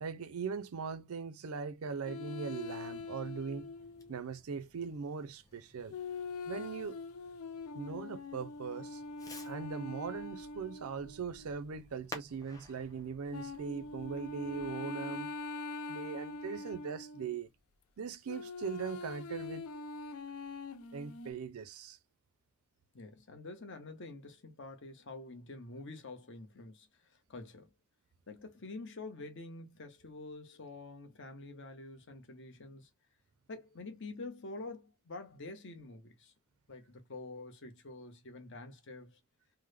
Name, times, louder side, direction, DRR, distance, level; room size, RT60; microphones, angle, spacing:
voice 1, 0.0-3.7 4.1-5.9 6.5-7.0 7.7-9.0 9.4-15.3 15.9-17.5 18.0-19.7 20.9-22.0, right 5 dB, 85° right, 0.5 m, -40 dB
sound 1, 2.0-4.3 5.9-11.9 13.3-17.3 18.3-21.3, left 3 dB, 80° left, 0.4 m, -43 dB
Fireworks, 3.3-14.7, left 2 dB, 15° left, 0.9 m, -55 dB
voice 2, 22.9-27.7 28.3-32.9 33.5-36.3 36.7-39.2, left 2 dB, 55° left, 0.9 m, -47 dB
3.5 x 2.1 x 3.2 m
head